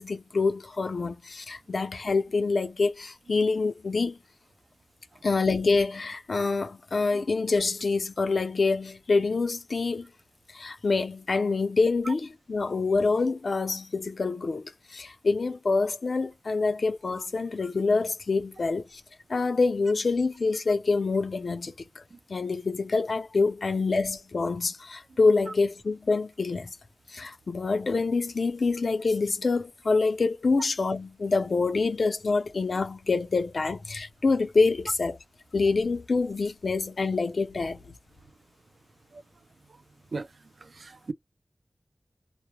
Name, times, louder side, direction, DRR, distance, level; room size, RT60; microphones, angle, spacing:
voice 1, 0.0-4.2 5.2-10.1 10.5-19.0 19.3-22.0 22.3-26.8 27.1-35.2 35.5-37.8, left 4 dB, 80° left, 0.5 m, -26 dB
voice 2, 40.6-41.1, right 3 dB, 80° right, 0.4 m, -36 dB
2.1 x 2.1 x 3.0 m
wide cardioid pair, 65°, 0 cm